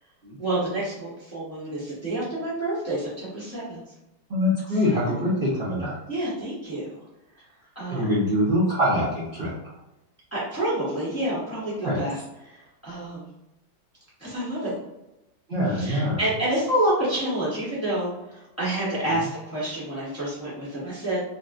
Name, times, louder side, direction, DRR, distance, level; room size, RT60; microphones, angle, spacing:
voice 1, 0.4-3.8 4.9-5.2 6.1-7.0 7.7-8.2 10.3-12.2 12.4-13.2 14.2-14.7 15.7-21.2, right 1 dB, 15° left, -9 dB, 0.6 m, -28 dB
voice 2, 4.3-5.9 7.9-9.5 11.8-12.0 15.5-16.2, left 1 dB, 75° right, -9 dB, 0.5 m, -24 dB
4.1 x 2.1 x 2.5 m, 0.94 s
omnidirectional pair, 2.3 m